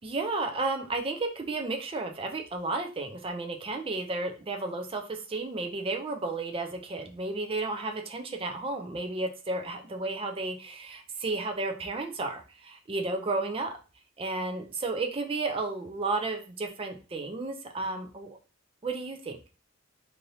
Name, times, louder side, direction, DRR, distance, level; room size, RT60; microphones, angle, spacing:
voice 1, 0.0-13.7 14.2-18.4 18.8-19.4, right 3 dB, 25° right, 5 dB, 0.4 m, -33 dB
3.1 x 2.6 x 2.7 m, 0.35 s
head